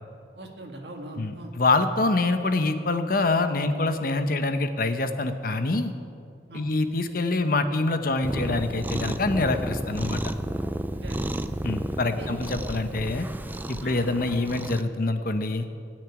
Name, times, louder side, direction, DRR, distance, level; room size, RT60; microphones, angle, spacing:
voice 1, 0.4-1.6 6.5-6.7 10.9-11.3 12.2-12.4 13.8-14.0, right 1 dB, 70° right, 2 dB, 1.9 m, -41 dB
voice 2, 1.2-5.9 6.5-10.2 11.6-13.3 13.7-15.7, left 2 dB, 50° left, 8 dB, 0.9 m, -25 dB
Cat, 8.2-14.8, right 1 dB, 10° right, 0.4 m, -32 dB
17.5 x 6.5 x 9.9 m, 2.4 s
head